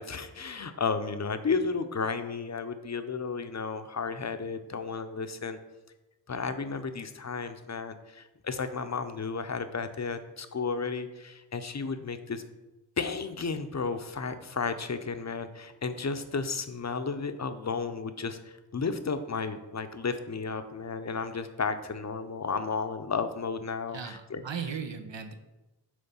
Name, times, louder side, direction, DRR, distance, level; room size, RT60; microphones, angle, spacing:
voice 1, 0.0-5.6 6.3-12.4 13.0-24.4, left 5 dB, 40° left, 9 dB, 0.6 m, -33 dB
voice 2, 23.9-25.3, right 6 dB, 80° right, 7 dB, 0.8 m, -37 dB
7.8 x 3.2 x 5.5 m, 1.0 s
wide cardioid pair, 80°, 44 cm